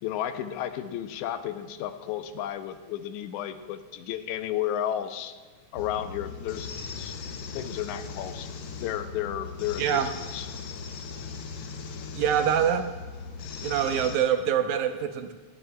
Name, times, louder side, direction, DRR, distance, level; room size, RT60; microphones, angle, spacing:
voice 1, 0.0-5.3 5.7-6.7 7.0-7.1 7.6-8.5 8.8-10.5, left 11 dB, 85° left, 9 dB, 2.1 m, -33 dB
sound 1, 5.8-14.2, left 5 dB, 70° left, 1.3 m, -38 dB
voice 2, 9.8-10.1 12.1-12.9 13.6-15.3, right 9 dB, 80° right, 7 dB, 2.1 m, -25 dB
19.0 x 11.0 x 2.2 m, 1.4 s
omnidirectional pair, 3.4 m